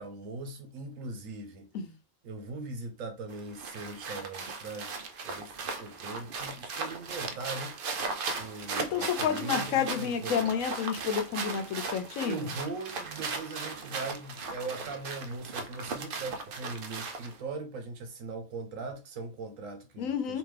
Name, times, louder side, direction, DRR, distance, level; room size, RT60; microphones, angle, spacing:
voice 1, 0.0-1.7 2.2-4.9 5.2-7.8 8.3-10.6 12.2-20.4, right 3 dB, 85° right, 1.2 m, -40 dB
sound 1, 3.3-17.4, right 4 dB, 55° right, 0.6 m, -37 dB
voice 2, 8.8-12.5 20.0-20.4, left 7 dB, 90° left, 1.1 m, -30 dB
3.5 x 2.8 x 3.2 m
omnidirectional pair, 1.3 m